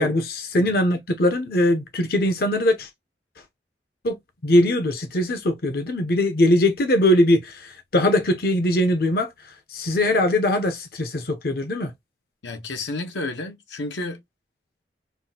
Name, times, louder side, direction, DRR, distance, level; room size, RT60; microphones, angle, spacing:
voice 1, 0.0-2.9 4.0-4.1 4.4-11.9, left 1 dB, 55° left, 0.6 m, -21 dB
voice 2, 12.4-14.2, left 2 dB, 90° left, 1.0 m, -31 dB
5.7 x 2.4 x 2.7 m
head